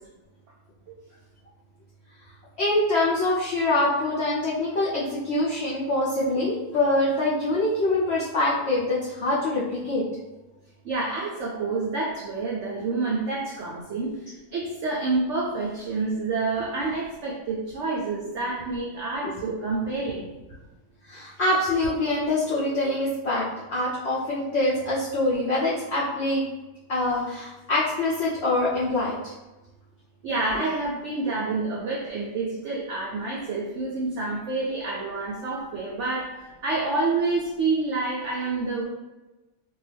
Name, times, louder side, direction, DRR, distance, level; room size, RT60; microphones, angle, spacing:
voice 1, 2.6-10.0 19.2-19.3 21.1-26.4 26.9-29.3, left 2 dB, 80° left, -6 dB, 0.5 m, -24 dB
voice 2, 10.8-20.3 30.2-38.9, right 3 dB, 80° right, -4 dB, 0.6 m, -28 dB
2.7 x 2.3 x 3.3 m, 1.1 s
omnidirectional pair, 1.8 m